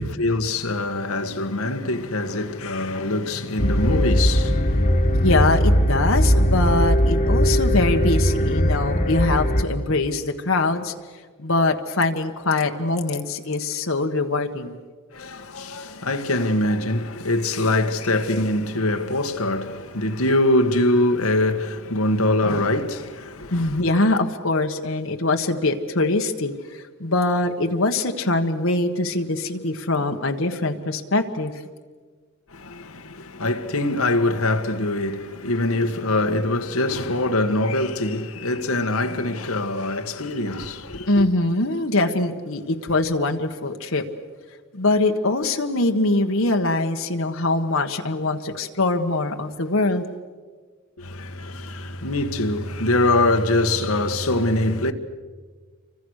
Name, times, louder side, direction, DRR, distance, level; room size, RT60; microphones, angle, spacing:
voice 1, 0.0-5.3 15.1-23.9 32.5-41.3 51.0-54.9, left 2 dB, 85° left, 1.8 m, -23 dB
sound 1, 3.6-9.6, equal, 35° left, 1.6 m, -19 dB
voice 2, 5.2-10.9 11.4-14.8 23.5-31.5 41.1-44.0 44.7-50.0, left 2 dB, 70° left, 1.5 m, -23 dB
29.5 x 25.5 x 6.6 m
head